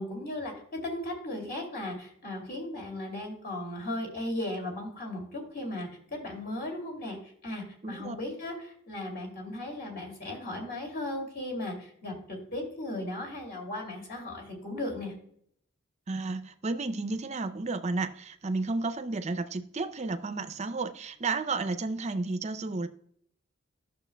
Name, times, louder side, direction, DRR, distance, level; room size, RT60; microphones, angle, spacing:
voice 1, 0.0-15.1, left 1 dB, 45° left, 1 dB, 2.5 m, -36 dB
voice 2, 7.8-8.2 16.1-22.9, right 3 dB, 30° right, 9 dB, 0.5 m, -32 dB
11.5 x 6.7 x 2.2 m, 0.66 s
head